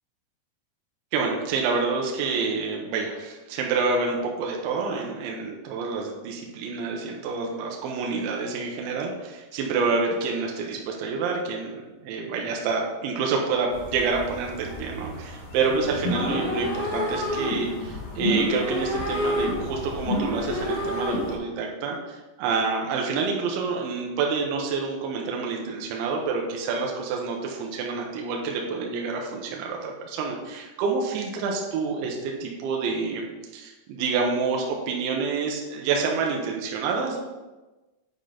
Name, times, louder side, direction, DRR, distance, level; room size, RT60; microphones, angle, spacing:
voice 1, 1.1-33.3 33.5-37.4, right 4 dB, 75° right, 0 dB, 3.0 m, -28 dB
sound 1, 13.7-21.4, left 1 dB, 65° left, 2.5 m, -29 dB
8.7 x 4.9 x 3.9 m, 1.1 s
omnidirectional pair, 5.9 m